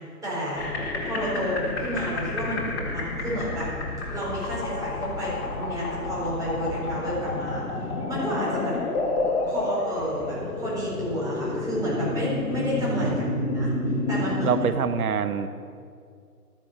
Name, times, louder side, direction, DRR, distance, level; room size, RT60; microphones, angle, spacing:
voice 1, 0.2-0.7 1.0-3.7 4.1-7.6 8.0-8.8 9.5-13.2 13.5-13.7 14.1-14.5, equal, 5° right, -8 dB, 4.2 m, -31 dB
sound 1, 0.6-14.7, left 2 dB, 40° left, 2.3 m, -29 dB
voice 2, 12.9-13.3 14.4-15.5, right 7 dB, 70° right, 11 dB, 1.1 m, -26 dB
12.5 x 10.5 x 6.8 m, 2.3 s
hypercardioid pair, 150°, 46 cm